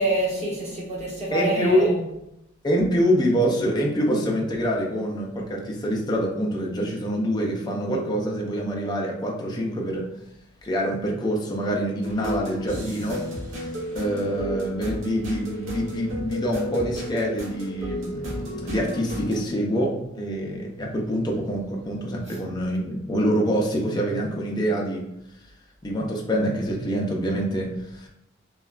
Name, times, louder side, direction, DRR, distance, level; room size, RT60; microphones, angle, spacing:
voice 1, 0.0-2.0 22.3-22.4, right 2 dB, 35° right, -6 dB, 1.0 m, -26 dB
voice 2, 1.3-1.9 2.6-10.0 10.6-13.2 13.9-25.0 25.8-28.1, equal, 20° left, -1 dB, 0.4 m, -25 dB
sound 1, 12.0-19.4, left 1 dB, 70° right, 0.7 m, -33 dB
3.0 x 2.2 x 2.4 m, 0.86 s
head